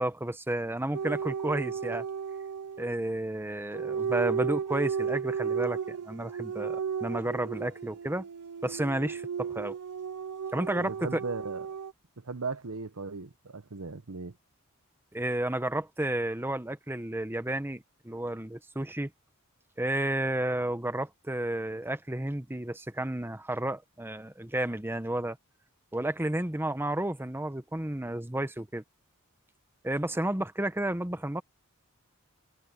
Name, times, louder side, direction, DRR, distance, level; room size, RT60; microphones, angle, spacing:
voice 1, 0.0-2.0 2.8-8.2 8.6-9.8 10.5-11.1 15.1-19.1 19.8-25.4 25.9-28.8 29.8-31.4, right 1 dB, 10° right, 1.0 m, -32 dB
sound 1, 0.9-2.9 3.7-11.9, right 6 dB, 85° right, 0.7 m, -34 dB
voice 2, 10.8-11.7 12.2-14.4, right 4 dB, 70° right, 1.0 m, -37 dB
head